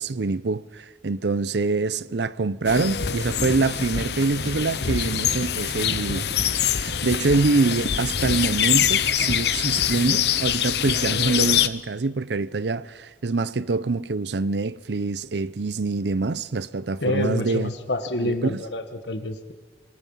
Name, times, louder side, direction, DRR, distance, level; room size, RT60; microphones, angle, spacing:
voice 1, 0.0-6.3 6.7-17.7 18.2-18.6, right 3 dB, 80° right, 0.6 m, -25 dB
sound 1, 2.6-11.7, left 9 dB, 70° left, 0.8 m, -24 dB
sound 2, 2.8-10.0, right 1 dB, 35° right, 1.5 m, -38 dB
voice 2, 17.0-19.5, left 2 dB, 90° left, 1.4 m, -28 dB
27.0 x 18.5 x 5.5 m
head